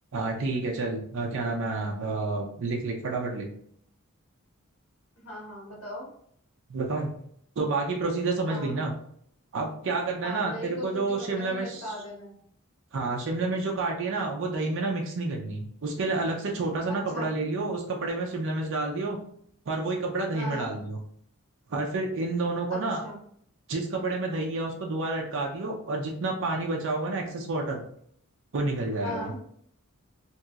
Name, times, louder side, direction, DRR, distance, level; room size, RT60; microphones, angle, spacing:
voice 1, 0.1-3.5 6.7-7.1 7.6-8.9 9.5-11.9 12.9-19.2 19.7-21.0 21.7-23.0 23.7-27.8 28.5-29.3, right 3 dB, 60° right, 0 dB, 0.5 m, -29 dB
voice 2, 5.2-6.1 8.5-8.8 10.2-12.4 16.9-17.3 20.3-20.7 22.7-23.2 29.0-29.4, left 1 dB, 75° left, -4 dB, 1.4 m, -38 dB
2.9 x 2.8 x 2.4 m, 0.66 s
head